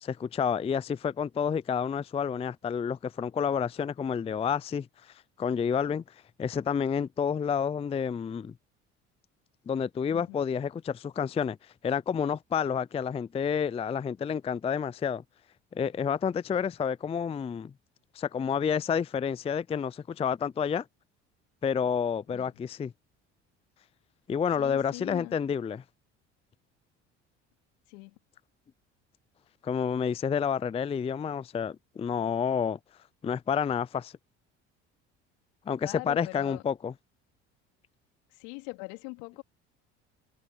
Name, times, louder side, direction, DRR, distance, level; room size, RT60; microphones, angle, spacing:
voice 1, 0.0-6.0 6.4-8.5 9.7-11.6 11.8-15.2 15.7-17.7 18.1-20.8 21.6-22.9 24.3-25.8 29.6-32.8 33.2-34.1 35.7-36.9, left 7 dB, 20° left, 0.4 m, -29 dB
voice 2, 10.1-10.5 22.3-22.6 24.6-25.4 27.9-28.2 35.8-36.6 38.3-39.4, left 32 dB, 75° left, 3.6 m, -42 dB
hypercardioid pair, 60°, 35 cm